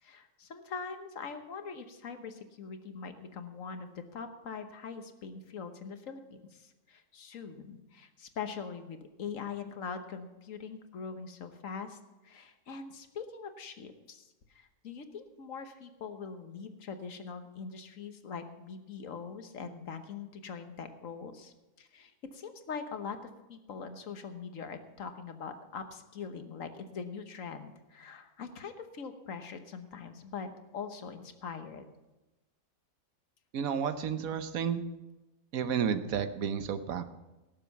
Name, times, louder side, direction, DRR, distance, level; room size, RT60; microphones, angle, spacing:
voice 1, 0.0-12.0 12.2-23.2 23.5-31.8, left 5 dB, 70° left, 7 dB, 1.5 m, -42 dB
voice 2, 33.5-34.8 35.5-37.1, right 7 dB, 85° right, 10 dB, 1.3 m, -31 dB
17.5 x 7.5 x 5.8 m, 1.1 s
omnidirectional pair, 1.4 m